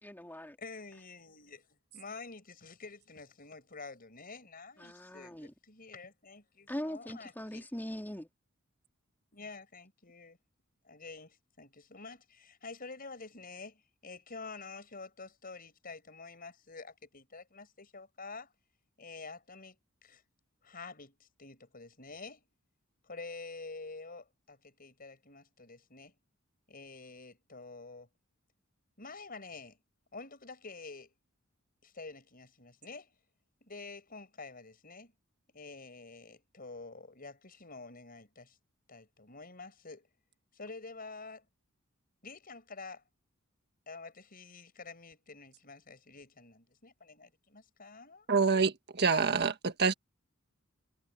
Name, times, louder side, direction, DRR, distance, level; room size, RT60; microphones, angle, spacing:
voice 1, 0.0-0.6 4.8-5.5 6.7-8.3, equal, 10° left, 3.6 m, -41 dB
voice 2, 0.6-7.7 9.3-10.4 10.8-18.5 19.0-19.8 20.0-20.2 20.6-22.5 23.1-26.2 26.7-28.1 29.0-29.8 30.1-31.1 31.8-33.1 33.6-35.1 35.5-38.6 38.9-40.1 40.5-41.4 42.2-43.0 43.9-48.3, left 3 dB, 45° left, 5.8 m, -48 dB
voice 3, 48.3-49.9, right 5 dB, 50° right, 1.6 m, -27 dB
head